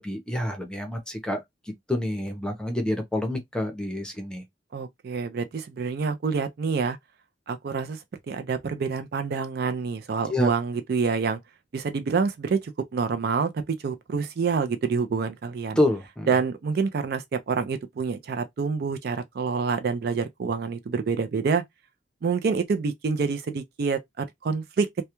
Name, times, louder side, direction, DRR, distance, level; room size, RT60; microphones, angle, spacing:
voice 1, 0.0-1.4 1.9-4.4 10.3-10.5 15.8-16.3, left 1 dB, 5° left, 0.6 m, -27 dB
voice 2, 4.7-7.0 7.5-11.4 11.7-15.8 16.3-21.6 22.2-24.9, right 5 dB, 60° right, 0.4 m, -27 dB
2.3 x 2.1 x 2.9 m
head